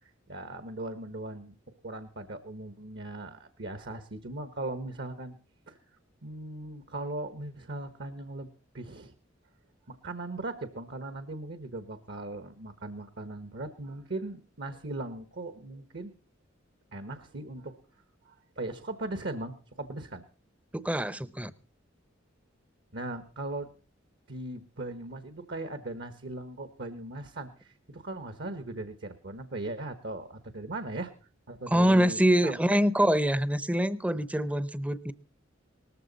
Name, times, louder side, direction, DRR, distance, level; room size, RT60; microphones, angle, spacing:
voice 1, 0.0-1.5 1.8-5.4 5.7-5.8 6.2-9.1 9.9-16.1 16.9-17.7 18.3-20.2 22.9-23.7 24.3-31.1 31.5-32.6, right 2 dB, 60° right, 1.1 m, -39 dB
voice 2, 20.7-21.5 31.7-35.1, equal, 5° right, 0.6 m, -25 dB
19.0 x 14.0 x 4.0 m
head